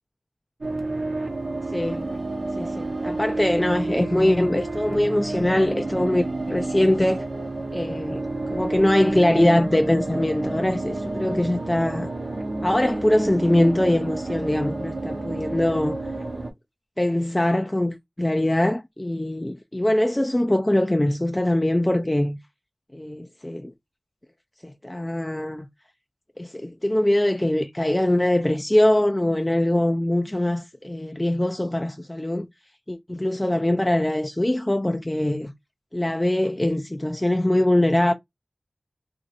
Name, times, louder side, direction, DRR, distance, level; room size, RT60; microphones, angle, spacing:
sound 1, 0.6-16.5, right 2 dB, 75° right, 0.9 m, -30 dB
voice 1, 1.7-2.1 2.6-7.3 7.7-12.1 12.6-16.0 17.0-22.4 22.9-23.7 24.6-25.7 26.4-32.5 32.9-35.5 35.9-38.1, left 1 dB, 20° left, 0.4 m, -22 dB
3.0 x 2.7 x 2.5 m
wide cardioid pair, 55°, 0 cm